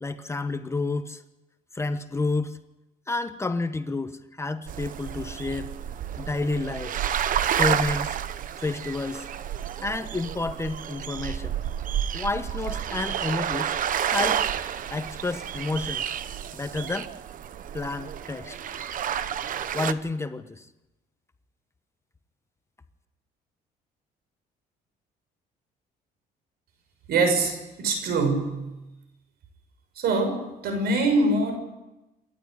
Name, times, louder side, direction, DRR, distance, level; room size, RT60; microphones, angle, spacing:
voice 1, 0.0-1.2 1.7-2.6 3.1-5.7 6.2-7.0 7.6-8.2 8.6-9.3 9.8-11.6 12.1-13.8 14.1-14.4 14.9-16.0 16.5-17.1 17.7-18.6 19.7-20.7, left 3 dB, 15° left, 10 dB, 1.1 m, -30 dB
sound 1, 4.7-19.9, right 9 dB, 55° right, 1.0 m, -30 dB
voice 2, 27.1-28.7 29.9-31.6, right 3 dB, 70° right, 7 dB, 6.5 m, -24 dB
27.5 x 12.0 x 9.6 m, 1.0 s
cardioid pair, 110°, 17 cm